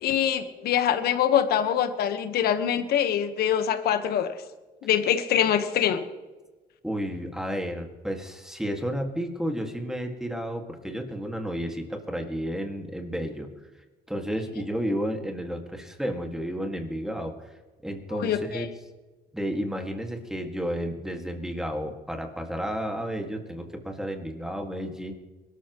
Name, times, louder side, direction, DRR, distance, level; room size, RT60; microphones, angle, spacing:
voice 1, 0.0-4.3 4.8-6.0 18.1-18.7, left 9 dB, 70° left, 9 dB, 1.4 m, -24 dB
voice 2, 6.8-13.5 14.1-17.3 17.8-18.7 19.3-25.1, equal, 5° right, 3 dB, 2.1 m, -32 dB
22.0 x 13.5 x 3.1 m, 1.2 s
cardioid pair, 110°, 17 cm